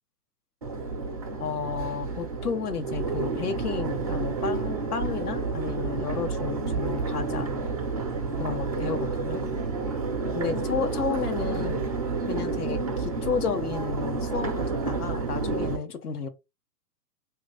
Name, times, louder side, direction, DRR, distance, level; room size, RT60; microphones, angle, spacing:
Crowd, 0.6-15.8, right 4 dB, 25° right, 0.4 m, -30 dB
voice 1, 1.4-7.5 8.4-9.4 10.3-11.9 12.3-16.3, left 5 dB, 65° left, 0.9 m, -32 dB
3.1 x 2.7 x 3.4 m
figure-of-eight pair, 115°, 50 cm